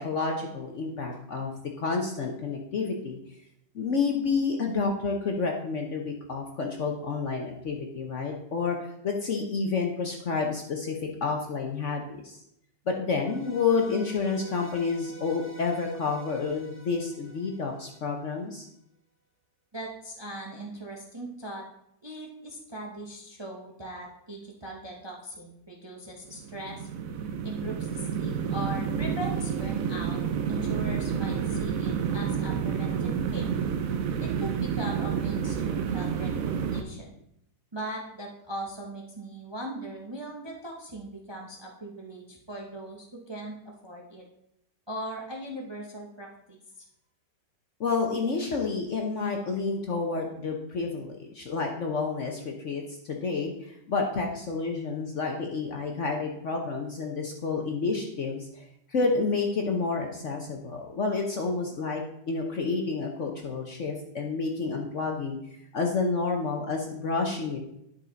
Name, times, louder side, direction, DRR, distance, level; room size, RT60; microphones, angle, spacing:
voice 1, 0.0-1.5 1.8-3.2 3.7-8.8 9.0-12.4 12.9-18.7 47.8-62.0 62.3-65.4 65.7-67.6, left 4 dB, 50° left, 2 dB, 1.0 m, -29 dB
sound 1, 13.2-18.4, right 1 dB, 15° left, 0.4 m, -49 dB
voice 2, 19.7-21.7 22.0-26.9 27.4-30.2 30.5-33.6 34.2-37.2 37.7-43.6 43.8-44.2 44.9-46.8, right 1 dB, 20° right, 0 dB, 0.8 m, -39 dB
sound 2, 26.3-36.8, right 7 dB, 60° right, 1.0 m, -29 dB
10.5 x 5.7 x 4.0 m, 0.78 s
omnidirectional pair, 1.9 m